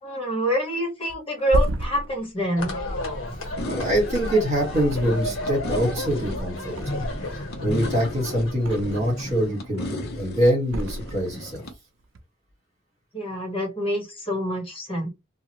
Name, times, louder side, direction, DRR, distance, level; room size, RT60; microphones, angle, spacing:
voice 1, 0.0-2.8 13.1-15.1, equal, 30° left, 1.5 m, -26 dB
Thump thud, 1.1-4.4 4.8-5.6 5.9-7.3 7.7-9.2 9.6-10.1 10.7-11.7 12.0-12.2, right 1 dB, 65° right, 0.5 m, -32 dB
sound 1, 2.6-9.7, left 1 dB, 80° left, 1.2 m, -32 dB
voice 2, 3.4-7.1 7.6-11.6, equal, 35° right, 1.8 m, -24 dB
sound 2, 3.6-11.7, left 1 dB, 55° left, 0.9 m, -36 dB
2.8 x 2.5 x 3.0 m
head